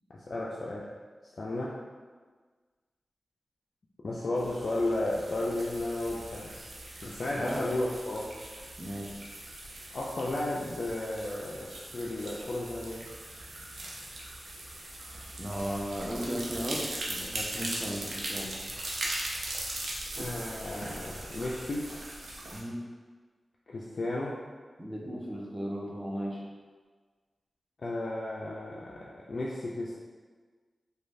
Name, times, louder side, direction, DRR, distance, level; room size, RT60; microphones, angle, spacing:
voice 1, 0.1-0.9 1.4-1.8 4.0-6.6 7.0-8.3 9.9-13.1 20.1-21.9 23.7-24.4 27.8-30.0, left 2 dB, 65° left, -5 dB, 0.3 m, -33 dB
sound 1, 4.4-22.6, right 1 dB, 75° right, 0.5 m, -40 dB
voice 2, 7.4-7.8 8.8-9.1 15.4-18.5 22.5-22.8 24.8-26.4, equal, 15° right, -2 dB, 0.6 m, -36 dB
3.0 x 2.2 x 2.6 m, 1.5 s
cardioid pair, 45°, 0 cm